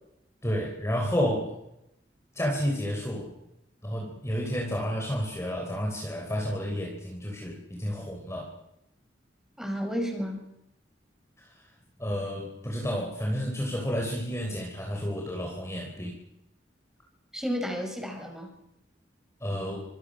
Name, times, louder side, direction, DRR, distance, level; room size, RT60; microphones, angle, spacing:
voice 1, 0.4-1.6 2.3-3.3 3.8-8.5 11.4-11.7 12.0-16.2 19.4-19.8, equal, 15° left, 0 dB, 3.7 m, -31 dB
voice 2, 9.6-10.4 17.3-18.5, equal, 5° right, 2 dB, 6.1 m, -32 dB
26.5 x 25.5 x 6.4 m, 0.86 s
head